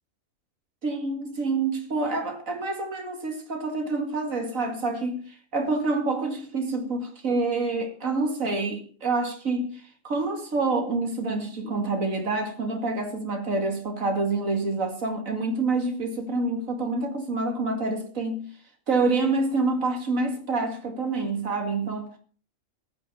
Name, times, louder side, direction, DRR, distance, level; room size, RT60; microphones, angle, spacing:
voice 1, 0.8-18.5 18.9-22.1, right 3 dB, 85° right, 2.7 m, -27 dB
15.0 x 10.5 x 5.7 m
omnidirectional pair, 1.4 m